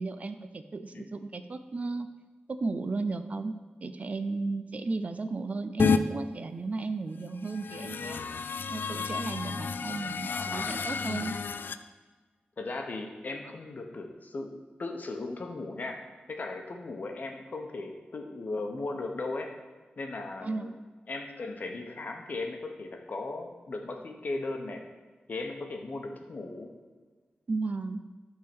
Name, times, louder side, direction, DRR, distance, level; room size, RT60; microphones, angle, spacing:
voice 1, 0.0-2.1 2.5-3.5 3.8-8.2 8.7-11.4 20.4-20.7 27.5-28.0, right 3 dB, 45° right, 9 dB, 0.5 m, -34 dB
sound 1, 5.8-6.0 7.4-11.8, left 5 dB, 75° left, 0.3 m, -30 dB
voice 2, 10.2-10.9 12.6-16.0 16.3-19.5 20.0-20.7 21.1-24.8 25.3-26.7, left 3 dB, 55° left, 3 dB, 1.0 m, -37 dB
10.5 x 3.8 x 6.1 m, 1.4 s
wide cardioid pair, 125°, 3 cm